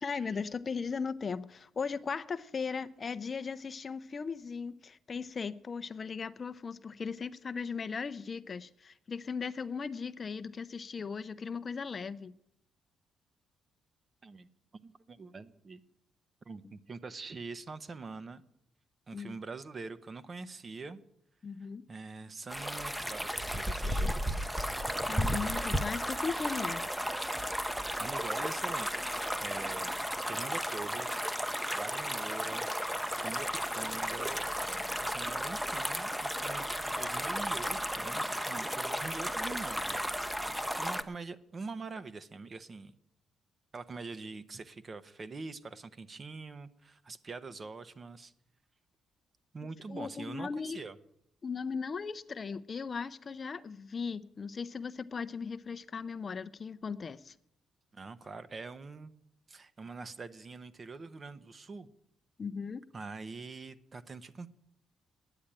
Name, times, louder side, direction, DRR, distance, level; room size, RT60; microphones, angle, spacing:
voice 1, 0.0-12.3 19.1-19.3 21.4-21.8 25.1-26.8 49.9-50.8 51.4-57.3 62.4-62.8, left 5 dB, 40° left, 0.5 m, -37 dB
voice 2, 14.2-15.8 16.5-18.4 19.1-21.0 21.6-24.1 28.0-30.0 30.3-32.7 33.2-33.5 33.7-34.4 35.0-40.4 40.7-42.9 43.7-48.3 49.5-50.9 57.9-59.1 59.5-61.9 62.9-64.5, right 4 dB, 35° right, 0.8 m, -44 dB
sound 1, 22.5-41.0, equal, 5° right, 0.7 m, -34 dB
9.9 x 8.6 x 8.9 m
cardioid pair, 90°, 0 cm